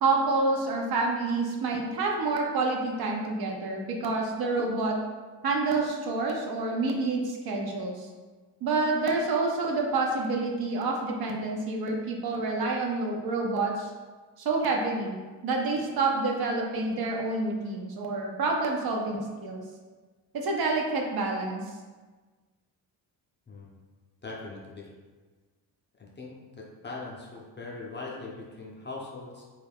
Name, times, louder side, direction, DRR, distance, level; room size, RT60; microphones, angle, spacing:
voice 1, 0.0-5.0 5.4-8.1 8.6-13.9 14.4-15.2 15.4-19.6 20.3-21.6, right 3 dB, 55° right, 1 dB, 0.6 m, -28 dB
voice 2, 24.2-24.9 26.0-29.4, left 3 dB, 25° left, -3 dB, 0.5 m, -41 dB
2.4 x 2.1 x 3.4 m, 1.4 s
supercardioid pair, 65°, 46 cm